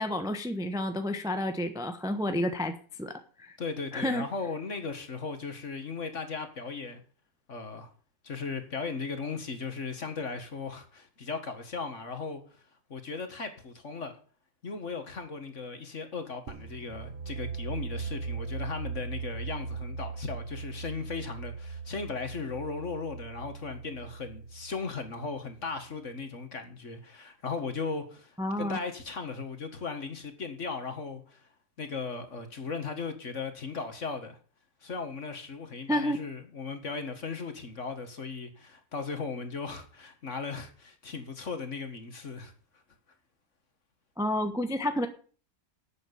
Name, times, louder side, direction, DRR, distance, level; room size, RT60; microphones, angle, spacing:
voice 1, 0.0-3.1 3.4-3.6 3.9-4.3 28.4-28.8 35.9-36.2 44.2-45.1, left 1 dB, 5° right, 0.9 m, -30 dB
voice 2, 3.6-7.0 7.5-7.9 8.2-12.6 12.9-14.2 14.6-31.5 31.8-34.4 34.8-42.5, left 4 dB, 45° left, 2.0 m, -37 dB
sound 1, 16.5-26.1, right 4 dB, 40° right, 1.0 m, -39 dB
11.0 x 7.9 x 8.6 m
omnidirectional pair, 1.9 m